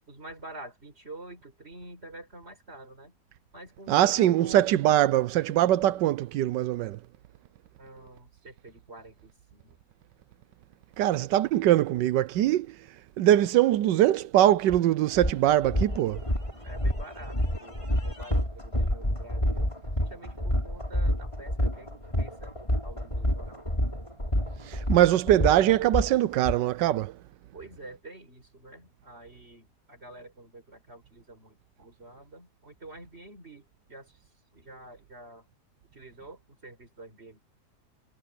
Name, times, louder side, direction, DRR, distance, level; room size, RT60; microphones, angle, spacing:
voice 1, 0.1-3.1 3.5-4.8 7.8-9.8 16.6-19.7 20.0-22.5 22.8-23.6 27.5-34.1 34.5-35.5 35.9-37.4, right 2 dB, 35° right, 5.2 m, -47 dB
voice 2, 3.9-7.0 11.0-12.8 13.2-16.2 24.6-27.1, right 13 dB, 90° right, 1.3 m, -22 dB
sound 1, 14.7-14.8 15.2-26.6, equal, 15° left, 6.2 m, -28 dB
omnidirectional pair, 1.8 m